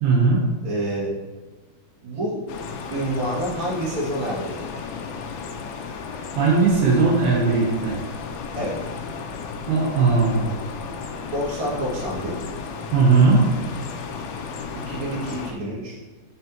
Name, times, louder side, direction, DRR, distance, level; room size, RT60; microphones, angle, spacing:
voice 1, 0.0-0.4 6.4-8.0 9.7-10.5 12.9-13.4, right 4 dB, 80° right, -2 dB, 2.9 m, -18 dB
voice 2, 0.6-1.1 2.0-2.4 2.9-4.9 8.5-8.8 11.3-12.4 14.7-16.0, right 1 dB, 40° right, -6 dB, 2.1 m, -28 dB
sound 1, 2.5-15.5, left 5 dB, 80° left, 2.2 m, -34 dB
7.8 x 5.7 x 2.9 m, 1.2 s
omnidirectional pair, 4.6 m